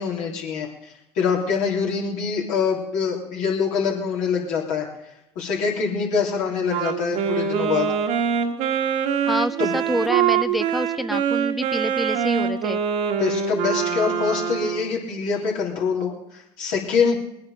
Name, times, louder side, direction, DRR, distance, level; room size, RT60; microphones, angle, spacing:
voice 1, 0.0-4.9 5.3-7.9 9.6-9.7 13.2-17.2, left 5 dB, 65° left, -1 dB, 3.4 m, -24 dB
Wind instrument woodwind instrument, 6.7-15.0, right 7 dB, 65° right, 1.6 m, -24 dB
voice 2, 9.3-12.8 17.1-17.2, equal, ahead, 13 dB, 0.4 m, -27 dB
20.5 x 9.6 x 5.1 m, 0.81 s
hypercardioid pair, 65°, 14 cm